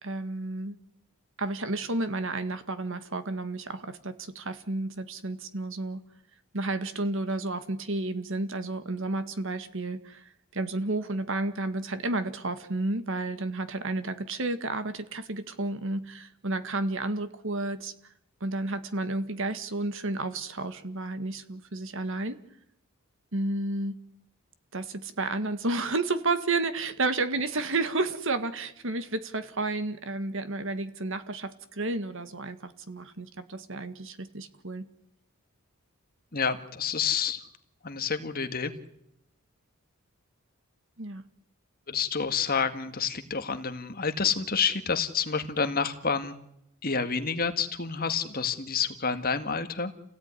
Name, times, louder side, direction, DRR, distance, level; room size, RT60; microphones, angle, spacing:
voice 1, 0.0-0.8 1.4-6.0 6.5-17.9 18.4-22.4 23.3-24.0 24.7-34.9 41.0-41.2, right 2 dB, 60° right, 11 dB, 1.9 m, -31 dB
voice 2, 36.3-37.5 37.8-38.7 41.9-46.4 46.8-49.9, left 6 dB, 40° left, 8 dB, 1.9 m, -29 dB
29.0 x 17.5 x 9.8 m, 0.78 s
head